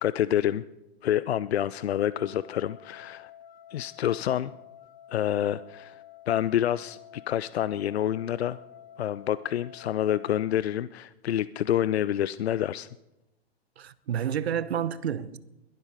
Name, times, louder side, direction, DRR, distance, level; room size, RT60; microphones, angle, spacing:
voice 1, 0.0-0.6 1.0-3.3 3.7-4.5 5.1-8.6 9.0-12.9, left 11 dB, 75° left, 0.5 m, -28 dB
sound 1, 1.8-10.5, left 11 dB, 25° left, 1.4 m, -50 dB
voice 2, 13.8-15.4, right 9 dB, 75° right, 1.0 m, -30 dB
21.5 x 12.0 x 4.8 m
hypercardioid pair, 105°, 32 cm